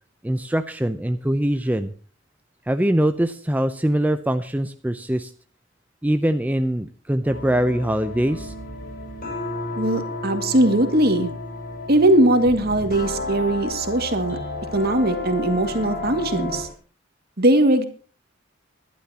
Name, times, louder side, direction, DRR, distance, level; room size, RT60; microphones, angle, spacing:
voice 1, 0.2-1.9 2.7-5.3 6.0-8.5, right 1 dB, 10° right, 8 dB, 0.5 m, -23 dB
sound 1, 7.2-16.7, left 2 dB, 45° left, 6.2 m, -32 dB
voice 2, 9.8-11.3 11.9-14.4 14.7-16.7 17.4-17.8, right 1 dB, 50° right, 6 dB, 2.2 m, -20 dB
22.0 x 11.5 x 2.9 m, 0.39 s
head